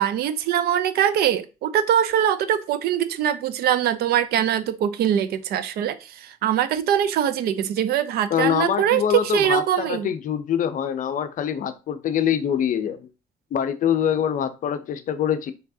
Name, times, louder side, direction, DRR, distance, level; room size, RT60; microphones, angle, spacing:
voice 1, 0.0-10.1, right 10 dB, 65° right, 0.5 m, -22 dB
voice 2, 8.3-13.1 13.5-15.5, left 9 dB, 50° left, 0.6 m, -24 dB
4.5 x 3.4 x 2.7 m
cardioid pair, 110°, 17 cm